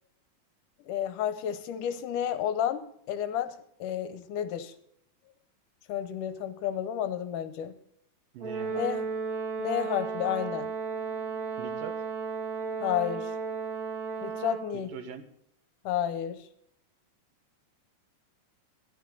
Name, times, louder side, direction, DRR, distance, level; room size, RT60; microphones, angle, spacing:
voice 1, 0.9-2.8 3.1-3.6 3.8-4.7 5.9-7.7 8.7-9.0 9.6-10.7 12.8-13.3 14.2-14.9 15.9-16.5, left 10 dB, 75° left, 11 dB, 2.2 m, -31 dB
voice 2, 8.3-8.9 11.6-12.0 14.7-15.3, right 7 dB, 80° right, 7 dB, 3.1 m, -42 dB
Brass instrument, 8.4-14.8, right 5 dB, 40° right, 2.3 m, -34 dB
13.5 x 13.0 x 3.9 m, 0.72 s
omnidirectional pair, 4.0 m